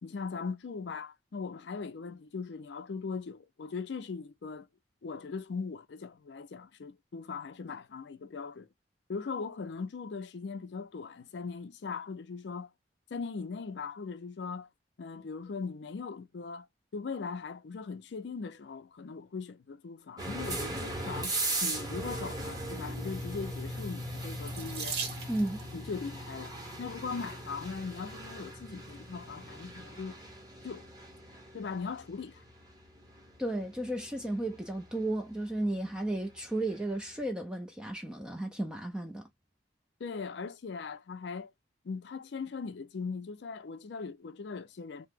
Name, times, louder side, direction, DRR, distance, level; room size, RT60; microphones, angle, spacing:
voice 1, 0.0-4.7 5.0-8.7 9.1-12.7 13.1-14.7 15.0-16.7 16.9-21.3 21.6-25.0 25.7-30.2 30.6-30.9 31.5-32.4 40.0-41.5 41.8-45.1, left 5 dB, 70° left, 0.4 m, -39 dB
sound 1, 20.2-36.9, right 1 dB, 20° right, 0.9 m, -39 dB
Water tap faucet / Sink (filling or washing), 24.5-25.7 26.7-27.1 27.8-27.9 28.3-28.4, right 5 dB, 60° right, 0.8 m, -38 dB
voice 2, 25.3-25.6 33.4-39.3, right 1 dB, 5° right, 0.4 m, -34 dB
2.9 x 2.0 x 3.4 m
head